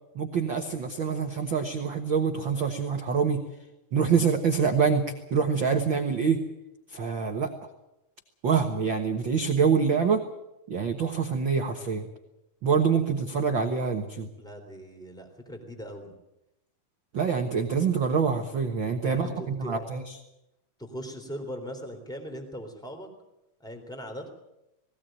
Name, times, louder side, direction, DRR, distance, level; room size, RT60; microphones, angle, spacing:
voice 1, 0.1-3.4 3.9-6.4 6.9-7.5 8.4-10.2 10.7-12.1 12.6-14.3 17.1-20.1, right 6 dB, 65° right, 4 dB, 1.1 m, -25 dB
voice 2, 14.4-16.1 19.0-19.8 20.8-23.1 23.6-24.3, equal, ahead, 5 dB, 2.7 m, -39 dB
20.0 x 17.0 x 9.0 m, 0.90 s
omnidirectional pair, 4.3 m